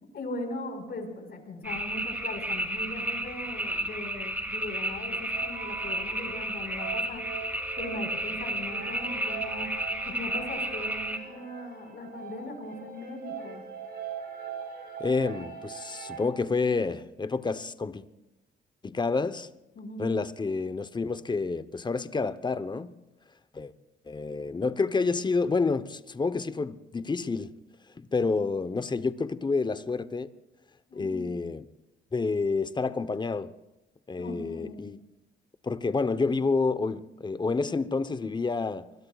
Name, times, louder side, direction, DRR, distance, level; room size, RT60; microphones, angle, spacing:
voice 1, 0.1-7.3 7.8-9.7 10.0-13.6 19.7-20.1 30.9-31.3 34.2-34.8, left 2 dB, 55° left, 4.7 m, -39 dB
sound 1, 1.6-11.2, right 1 dB, 10° right, 2.6 m, -32 dB
sound 2, 3.1-4.7 5.0-16.2, right 7 dB, 55° right, 6.3 m, -42 dB
voice 2, 15.0-18.0 18.8-19.5 20.0-22.9 23.5-23.7 24.1-27.5 28.0-30.3 30.9-31.7 32.1-33.5 34.1-35.0 35.6-38.9, left 4 dB, 20° left, 0.9 m, -29 dB
26.0 x 21.5 x 2.4 m
cardioid pair, 90°, 20 cm